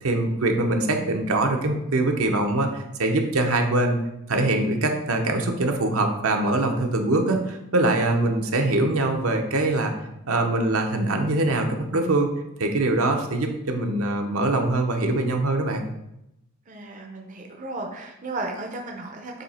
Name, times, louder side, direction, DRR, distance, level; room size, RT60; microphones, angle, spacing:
voice 1, 0.0-4.0 4.3-9.9 10.3-12.3 12.6-15.8, right 2 dB, 70° right, 3 dB, 0.8 m, -23 dB
voice 2, 16.7-19.4, right 2 dB, 35° right, 1 dB, 0.6 m, -34 dB
7.8 x 2.9 x 4.2 m, 0.85 s
head